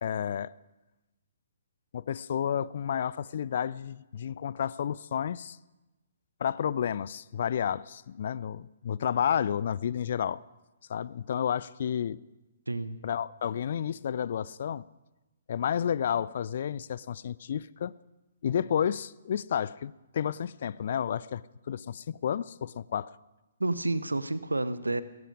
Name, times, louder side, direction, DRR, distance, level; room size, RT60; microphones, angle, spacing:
voice 1, 0.0-0.5 1.9-5.6 6.4-10.4 10.9-12.2 13.0-14.8 15.5-17.9 18.4-23.1, left 8 dB, 50° left, 21 dB, 0.4 m, -31 dB
voice 2, 12.7-13.0 23.6-25.0, right 2 dB, 75° right, 15 dB, 0.9 m, -30 dB
17.0 x 14.5 x 4.9 m, 1.0 s
figure-of-eight pair, 125°, 0 cm